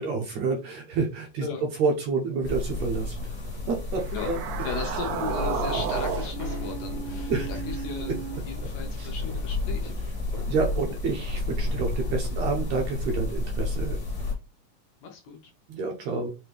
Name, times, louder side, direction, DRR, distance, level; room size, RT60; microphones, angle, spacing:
voice 1, 0.0-1.5 1.8-3.3 3.7-4.4 7.3-7.5 8.1-8.2 9.0-9.1 10.5-14.0 15.7-16.3, right 4 dB, 70° right, 2 dB, 1.8 m, -28 dB
sound 1, 2.4-14.3, left 2 dB, 40° left, 1.2 m, -31 dB
sound 2, 4.0-8.4, right 7 dB, 90° right, 2.5 m, -33 dB
voice 2, 4.6-8.2 8.4-9.9 15.0-15.4, left 6 dB, 70° left, 3 dB, 1.9 m, -36 dB
sound 3, 5.8-13.3, left 1 dB, 50° right, 0.5 m, -47 dB
5.9 x 2.7 x 3.3 m, 0.29 s
omnidirectional pair, 3.8 m